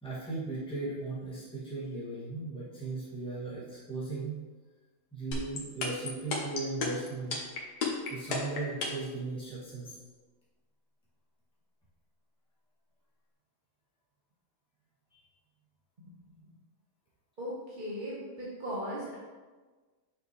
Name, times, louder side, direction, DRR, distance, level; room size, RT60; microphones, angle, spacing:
voice 1, 0.0-4.4 5.1-7.4 8.1-10.0 15.1-15.2, right 3 dB, 5° left, -10 dB, 2.0 m, -37 dB
sound 1, 5.3-9.1, left 4 dB, 85° left, 1.7 m, -32 dB
voice 2, 17.4-19.2, equal, 35° right, -6 dB, 1.1 m, -37 dB
6.5 x 6.0 x 3.2 m, 1.3 s
omnidirectional pair, 1.7 m